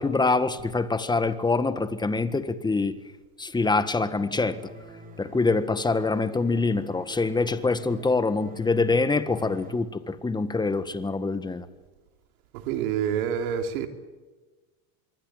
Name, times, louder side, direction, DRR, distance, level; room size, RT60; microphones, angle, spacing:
voice 1, 0.0-3.0 3.4-4.6 5.2-11.7, left 3 dB, 10° left, 1.7 m, -25 dB
sound 1, 4.2-9.7, left 1 dB, 20° right, 4.0 m, -45 dB
voice 2, 12.5-13.9, right 8 dB, 80° right, 3.4 m, -27 dB
26.0 x 23.5 x 9.1 m
supercardioid pair, 130°, 42 cm